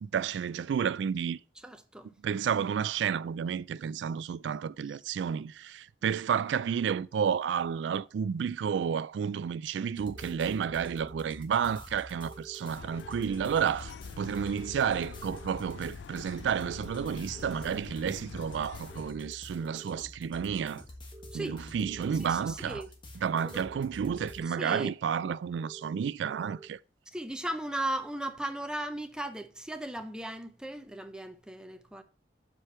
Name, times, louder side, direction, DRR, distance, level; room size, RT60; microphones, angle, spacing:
voice 1, 0.0-1.4 2.2-20.8 21.3-22.8 23.2-26.8, right 7 dB, 85° right, 0.3 m, -31 dB
voice 2, 1.6-2.1 4.9-5.0 21.3-21.7 22.2-22.9 23.5-23.6 24.5-24.9 27.1-32.0, right 1 dB, 5° right, 0.6 m, -37 dB
sound 1, 10.0-24.4, left 1 dB, 30° left, 1.4 m, -49 dB
Phone Dialling, 10.1-11.1 12.2-13.4 14.4-15.6 16.7-17.8 18.9-20.0 21.1-22.2 23.3-24.5 25.6-26.7, right 2 dB, 20° right, 1.0 m, -50 dB
sound 2, 12.8-19.1, left 6 dB, 85° left, 0.3 m, -46 dB
7.5 x 5.0 x 4.4 m
head